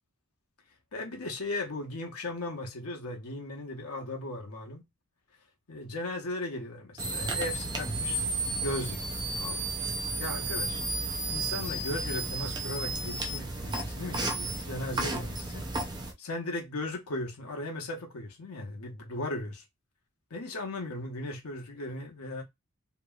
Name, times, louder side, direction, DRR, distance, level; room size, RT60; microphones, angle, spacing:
voice 1, 0.9-4.8 5.7-8.2 8.6-9.7 10.2-10.8 11.3-15.7 16.2-19.6 20.3-22.4, left 2 dB, 85° left, 0.9 m, -37 dB
sound 1, 7.0-16.1, right 2 dB, 20° right, 0.5 m, -33 dB
2.9 x 2.6 x 2.3 m
head